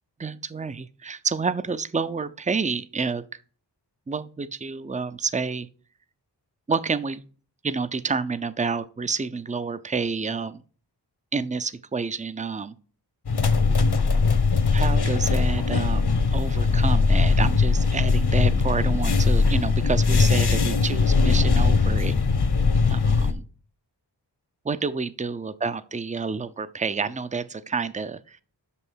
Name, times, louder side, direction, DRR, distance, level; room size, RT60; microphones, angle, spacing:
voice 1, 0.2-3.3 4.1-5.7 6.7-7.2 7.6-10.6 11.3-12.7 14.7-22.2 22.9-23.4 24.6-28.4, right 4 dB, 15° right, 15 dB, 0.6 m, -29 dB
sound 1, 13.3-23.3, left 4 dB, 65° left, 1.2 m, -20 dB
6.2 x 5.7 x 6.3 m, 0.40 s
cardioid pair, 55°, 42 cm